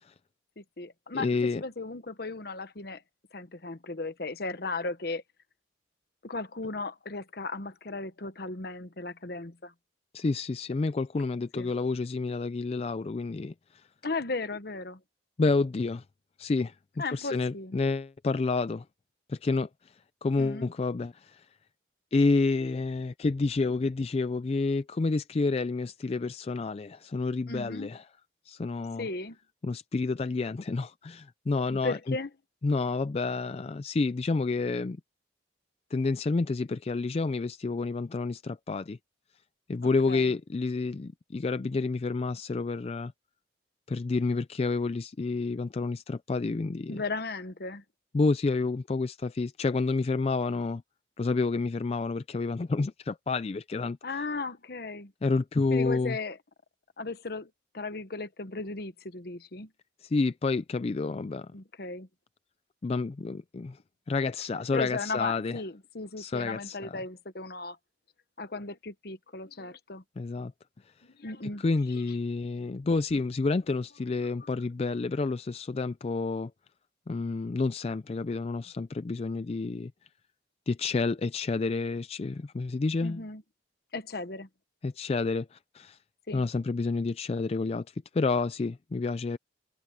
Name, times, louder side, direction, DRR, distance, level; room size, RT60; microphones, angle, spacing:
voice 1, 0.6-1.3 1.6-3.0 3.3-5.2 6.2-9.7 11.5-11.7 14.0-15.0 17.0-17.7 20.4-20.7 27.5-27.9 29.0-29.4 31.7-32.3 39.8-40.3 46.9-47.8 54.0-55.1 55.7-56.4 57.0-59.7 61.5-62.1 64.7-67.8 68.4-70.0 71.1-71.6 74.4-74.7 83.0-83.4 83.9-84.5 86.3-86.5, left 3 dB, 60° left, 1.1 m, -36 dB
voice 2, 1.1-1.6 10.1-13.8 15.4-16.0 16.4-16.8 17.1-18.8 19.3-19.9 20.2-21.5 22.1-28.0 28.5-29.1 29.6-32.2 32.6-35.0 35.9-39.0 39.7-43.1 43.9-47.0 48.1-50.8 51.2-54.2 55.2-56.2 60.0-61.5 62.8-63.8 64.1-65.6 66.2-67.0 70.2-70.5 71.6-76.5 77.1-79.9 80.7-83.2 84.8-86.0 86.3-89.4, left 3 dB, 35° left, 0.4 m, -29 dB
head